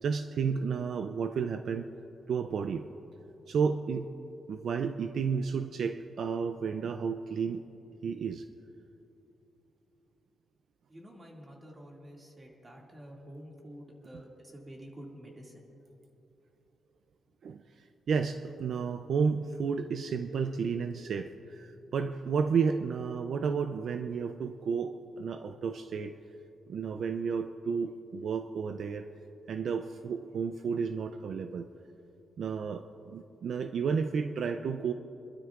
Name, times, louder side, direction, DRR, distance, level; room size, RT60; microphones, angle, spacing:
voice 1, 0.0-1.9 2.3-2.9 3.5-4.1 4.5-7.6 8.0-8.5 17.4-26.2 26.7-29.1 29.5-31.7 32.4-34.9, right 6 dB, 65° right, 8 dB, 0.4 m, -32 dB
voice 2, 10.9-15.7, equal, 25° right, -1 dB, 2.2 m, -49 dB
26.0 x 12.5 x 2.5 m, 3.0 s
cardioid pair, 100°, 0 cm